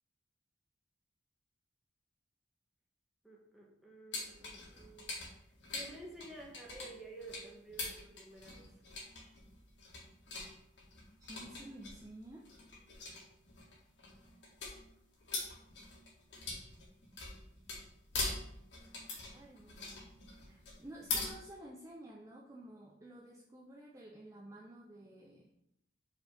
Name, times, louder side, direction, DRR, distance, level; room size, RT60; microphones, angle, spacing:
voice 1, 3.2-5.2 5.7-8.7, right 2 dB, ahead, -2 dB, 1.3 m, -52 dB
sound 1, 4.1-21.3, left 3 dB, 90° left, 1.9 m, -43 dB
voice 2, 11.2-12.4 19.3-20.1 20.4-25.5, right 1 dB, 20° right, -3 dB, 0.6 m, -52 dB
5.4 x 4.4 x 5.2 m, 0.77 s
head